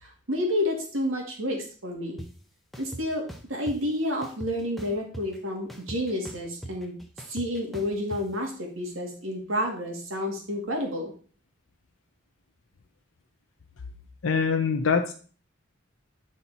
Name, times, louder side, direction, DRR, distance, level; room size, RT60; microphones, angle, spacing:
voice 1, 0.0-2.2 2.8-7.0 7.3-11.1, left 1 dB, 80° right, 1 dB, 2.1 m, -30 dB
sound 1, 2.2-2.3 2.7-3.8 4.2-5.4 5.7-8.2, right 1 dB, ahead, 0.7 m, -40 dB
voice 2, 14.2-15.1, left 5 dB, 90° left, 4 dB, 0.6 m, -24 dB
9.5 x 4.3 x 4.0 m, 0.41 s
head